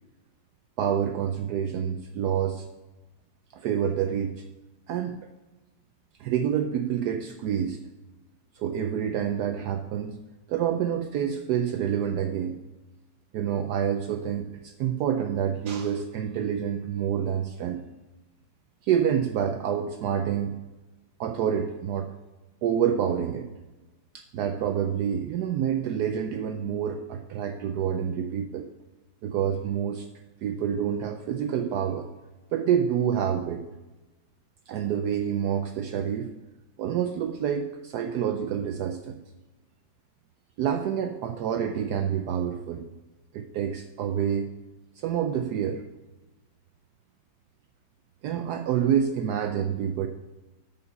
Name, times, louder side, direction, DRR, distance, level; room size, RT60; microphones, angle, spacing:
voice 1, 0.8-2.7 3.5-4.4 4.9-5.3 6.2-7.8 8.6-10.2 10.5-12.6 13.3-17.8 18.8-20.6 21.2-22.1 22.6-23.5 24.1-28.7 29.2-30.1 30.4-32.1 32.5-33.6 34.7-36.3 36.8-39.2 40.6-42.8 43.3-44.5 45.0-45.8 48.2-50.1, right 8 dB, 75° right, 6 dB, 1.0 m, -27 dB
8.7 x 5.4 x 5.4 m, 1.1 s
omnidirectional pair, 2.0 m